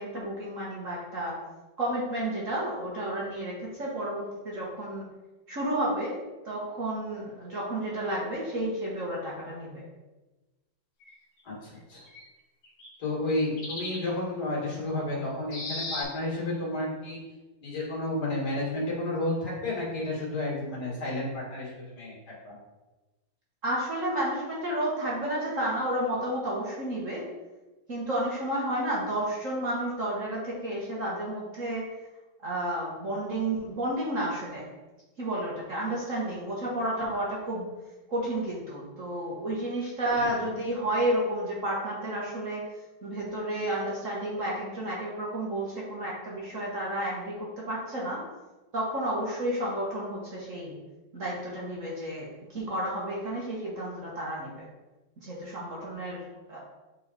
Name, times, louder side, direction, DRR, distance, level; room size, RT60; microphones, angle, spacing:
voice 1, 0.0-1.4 1.8-5.1 5.5-6.2 6.4-9.8 23.6-27.2 27.9-31.8 32.4-34.6 35.2-37.6 38.1-42.6 43.0-48.2 48.7-50.7 51.1-54.6 55.2-56.2 56.5-56.6, right 1 dB, 45° right, -4 dB, 1.5 m, -31 dB
sound 1, 11.0-11.1 11.9-12.2 12.6-12.9 13.3-13.4 13.6-14.0 15.5-16.0, left 2 dB, 70° left, 2.4 m, -36 dB
voice 2, 11.4-12.0 13.0-17.2 17.6-22.1 22.4-22.6 40.2-40.3, left 2 dB, 55° left, -4 dB, 2.5 m, -31 dB
7.5 x 4.0 x 4.1 m, 1.1 s
omnidirectional pair, 2.2 m